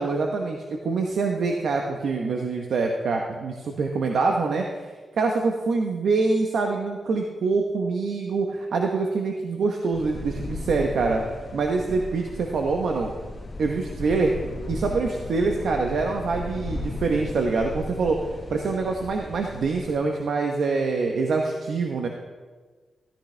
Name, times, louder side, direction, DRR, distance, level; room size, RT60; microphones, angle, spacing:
voice 1, 0.0-11.2 11.5-13.1 13.6-14.3 14.7-18.2 18.5-22.1, right 4 dB, 75° right, 2 dB, 0.9 m, -25 dB
sound 1, 9.9-19.9, left 2 dB, 35° left, 1.4 m, -36 dB
13.0 x 13.0 x 3.3 m, 1.4 s
cardioid pair, 100°, 0 cm